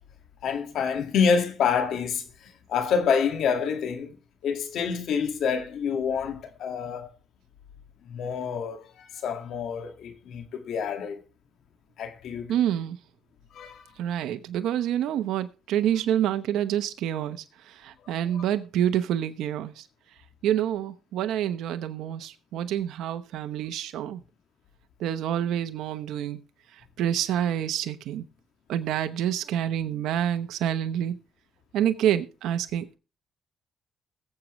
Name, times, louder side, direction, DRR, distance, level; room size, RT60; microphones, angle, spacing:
voice 1, 0.4-4.2 4.4-7.1 8.0-11.2 12.0-12.5 13.5-13.9 18.3-18.4, left 6 dB, 75° left, 2.0 m, -27 dB
voice 2, 12.5-13.0 14.0-19.8 20.4-24.2 25.0-26.4 27.0-28.2 28.7-31.2 31.7-33.0, right 10 dB, 85° right, 0.9 m, -27 dB
21.5 x 7.6 x 3.1 m
cardioid pair, 90°, 0 cm